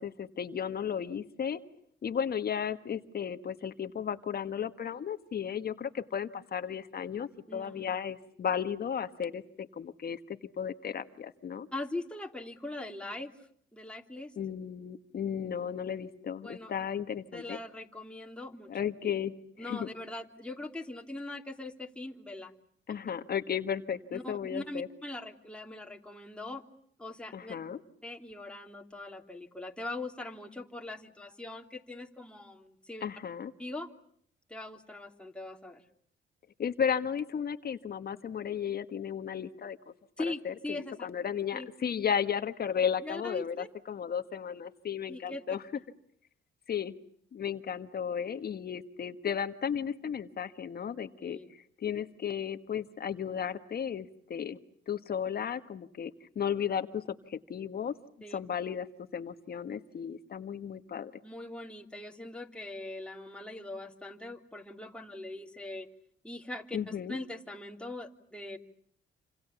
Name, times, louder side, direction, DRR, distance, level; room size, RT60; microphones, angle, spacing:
voice 1, 0.0-1.6 2.0-11.7 14.4-17.6 18.7-19.3 19.6-19.9 22.9-24.9 27.3-27.8 33.0-33.5 36.6-39.8 40.2-45.6 46.7-47.0 47.3-54.6 54.9-57.9 58.3-58.9 59.1-61.1 66.7-67.2, left 8 dB, 50° left, 10 dB, 1.6 m, -34 dB
voice 2, 7.5-7.9 11.7-14.3 16.4-16.7 17.3-18.7 19.0-19.1 19.6-22.5 24.1-26.6 27.0-27.6 28.0-33.1 33.6-33.9 34.5-35.8 40.2-41.1 41.5-41.7 43.0-43.7 45.1-45.4 51.2-51.5 58.2-58.4 61.2-65.9 66.2-68.6, left 2 dB, 5° left, 2 dB, 3.1 m, -41 dB
28.5 x 27.0 x 7.2 m, 0.64 s
cardioid pair, 90°, 20 cm